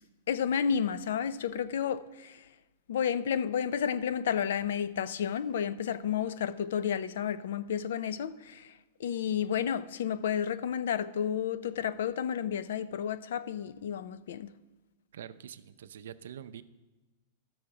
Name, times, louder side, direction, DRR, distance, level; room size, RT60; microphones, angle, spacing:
voice 1, 0.3-2.5 2.9-8.7 9.0-14.5, left 8 dB, 75° left, 0.4 m, -31 dB
voice 2, 15.1-16.6, right 9 dB, 85° right, 0.5 m, -45 dB
13.0 x 6.3 x 4.8 m
supercardioid pair, 165°, 0 cm